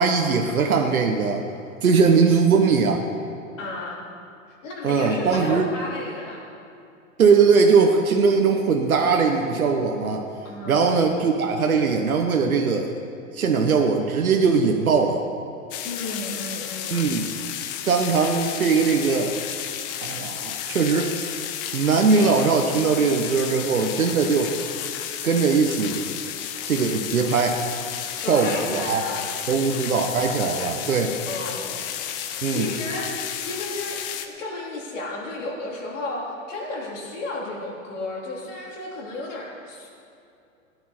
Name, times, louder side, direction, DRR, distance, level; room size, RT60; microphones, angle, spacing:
voice 1, 0.0-1.4 1.8-3.0 4.8-5.7 7.2-10.2 10.7-12.9 13.3-15.2 16.9-17.3 17.9-19.3 20.0-21.1 21.7-24.5 25.2-26.1 26.7-27.6 28.3-29.0 29.5-31.1 32.4-32.7, right 5 dB, 85° right, 3 dB, 1.1 m, -20 dB
voice 2, 3.6-4.0 4.5-6.5 10.4-11.0 15.8-17.0 28.2-29.2 31.3-31.8 32.2-39.9, left 2 dB, 65° left, -3 dB, 3.5 m, -33 dB
sound 1, 15.7-34.3, left 10 dB, 40° left, 0.9 m, -32 dB
15.0 x 10.0 x 4.4 m, 2.6 s
hypercardioid pair, 115°, 41 cm